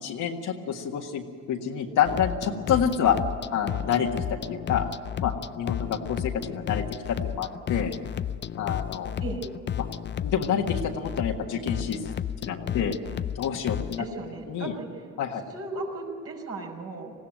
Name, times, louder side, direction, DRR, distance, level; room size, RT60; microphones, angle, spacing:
voice 1, 0.0-3.2 3.5-4.9 5.2-7.9 8.6-9.1 9.8-9.9 10.2-12.1 12.4-13.0 13.4-14.1 14.5-14.7 15.2-15.4, left 8 dB, 80° left, 0 dB, 1.7 m, -28 dB
sound 1, 2.1-14.1, left 9 dB, 35° left, 0.5 m, -33 dB
voice 2, 14.0-15.0 15.5-17.1, right 3 dB, 50° right, -1 dB, 5.8 m, -36 dB
20.0 x 16.0 x 9.1 m, 2.3 s
cardioid pair, 90°, 30 cm